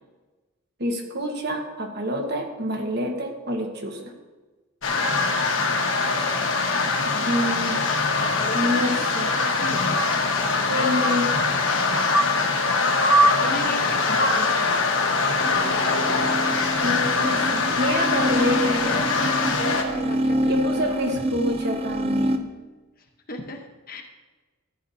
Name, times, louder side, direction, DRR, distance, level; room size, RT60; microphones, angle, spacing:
voice 1, 0.8-4.0 7.3-7.8 8.5-9.3 10.7-11.3 16.8-19.1 20.5-22.4, left 1 dB, 50° right, 3 dB, 1.3 m, -27 dB
sound 1, 4.8-19.8, left 3 dB, 65° left, 1.3 m, -22 dB
voice 2, 7.1-7.9 8.2-9.1 9.4-11.3 13.4-14.8 15.6-16.1 18.3-21.0 23.0-24.0, left 2 dB, 40° left, 3 dB, 1.0 m, -36 dB
sound 2, 15.3-22.4, equal, 25° right, 0.5 m, -27 dB
14.0 x 9.9 x 2.7 m, 1.3 s
head